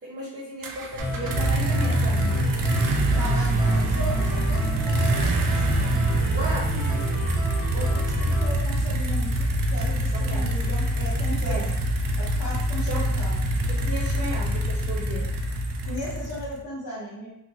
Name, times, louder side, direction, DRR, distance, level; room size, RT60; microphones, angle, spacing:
voice 1, 0.0-2.4 6.4-7.3 10.1-10.5 11.5-11.7 12.8-13.1 13.7-15.3, right 1 dB, 30° right, -5 dB, 0.7 m, -35 dB
sound 1, 0.6-16.6, right 1 dB, 70° right, 0.5 m, -25 dB
sound 2, 1.0-8.6, right 1 dB, 30° left, 0.9 m, -29 dB
voice 2, 3.1-5.9 6.3-6.9 7.7-11.8 12.2-13.4 15.8-17.3, left 1 dB, 80° left, -10 dB, 0.9 m, -36 dB
2.8 x 2.1 x 2.6 m, 0.80 s
wide cardioid pair, 140°, 36 cm